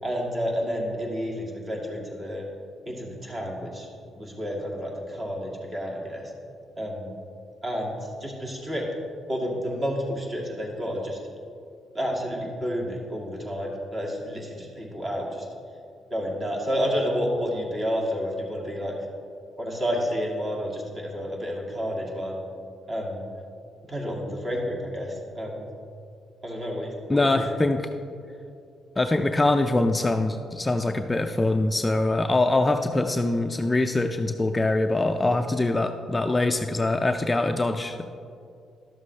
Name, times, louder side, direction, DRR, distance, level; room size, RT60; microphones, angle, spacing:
voice 1, 0.0-2.4 2.8-3.9 4.1-6.3 6.7-7.1 7.6-8.9 9.3-11.2 11.9-15.5 16.1-18.9 19.6-22.4 22.9-23.2 23.8-25.7 26.4-27.6, equal, 30° right, -2 dB, 2.1 m, -30 dB
voice 2, 27.1-27.9 29.0-38.1, left 2 dB, 20° left, 6 dB, 0.4 m, -23 dB
12.0 x 7.2 x 3.2 m, 2.5 s
cardioid pair, 90°, 0 cm